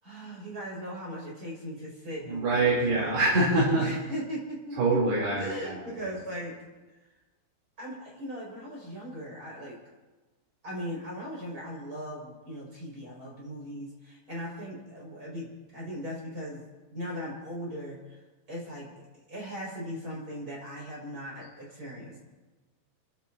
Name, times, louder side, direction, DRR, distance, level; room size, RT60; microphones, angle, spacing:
voice 1, 0.0-3.3 3.8-5.0 5.4-6.5 7.8-9.8 10.6-18.2 18.5-19.0 19.3-22.2, equal, 20° right, -4 dB, 6.4 m, -39 dB
voice 2, 2.3-3.9 4.8-5.8, right 2 dB, 80° right, -7 dB, 5.8 m, -24 dB
30.0 x 15.5 x 2.9 m, 1.2 s
omnidirectional pair, 4.6 m